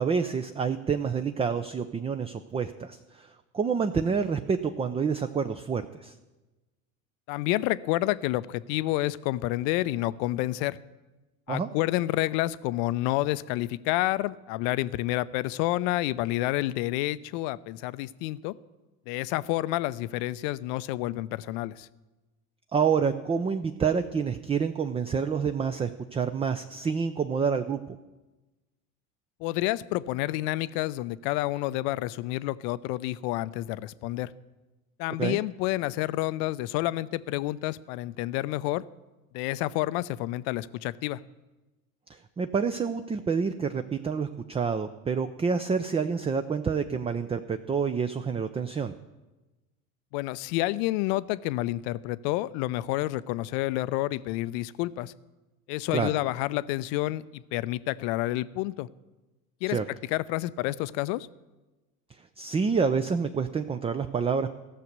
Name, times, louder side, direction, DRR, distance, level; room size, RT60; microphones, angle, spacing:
voice 1, 0.0-6.1 11.5-11.7 22.7-28.0 35.2-35.4 42.1-48.9 55.9-56.1 59.7-59.8 62.4-64.5, right 6 dB, 15° right, 9 dB, 0.4 m, -28 dB
voice 2, 7.3-10.8 11.5-18.5 19.1-21.9 29.4-34.3 35.0-38.8 39.3-41.2 50.1-55.1 55.7-58.9 59.6-59.8 60.1-61.3, left 17 dB, 60° left, 17 dB, 0.6 m, -29 dB
14.5 x 6.7 x 6.7 m, 1.1 s
hypercardioid pair, 75°, 43 cm